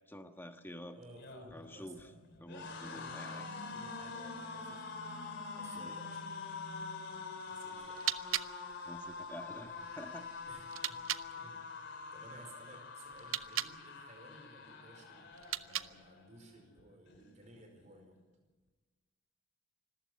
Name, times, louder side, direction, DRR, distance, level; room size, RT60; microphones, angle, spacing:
voice 1, 0.1-1.0 1.5-2.1 2.4-3.4 5.7-5.9 8.8-10.3, left 1 dB, 10° left, 6 dB, 1.3 m, -48 dB
voice 2, 0.9-2.2 2.9-5.0 5.5-6.5 7.5-8.2 10.5-11.0 11.3-11.6 12.1-18.2, right 1 dB, 35° right, 4 dB, 4.6 m, -57 dB
sound 1, 1.0-16.2 16.6-16.8 17.1-17.9, left 4 dB, 55° left, 3.5 m, -46 dB
sound 2, 1.8-8.1, right 1 dB, 85° left, 1.8 m, -52 dB
sound 3, 7.7-11.3 13.1-13.8 15.3-16.2, right 12 dB, 75° right, 0.7 m, -40 dB
26.0 x 14.5 x 8.2 m, 1.3 s
head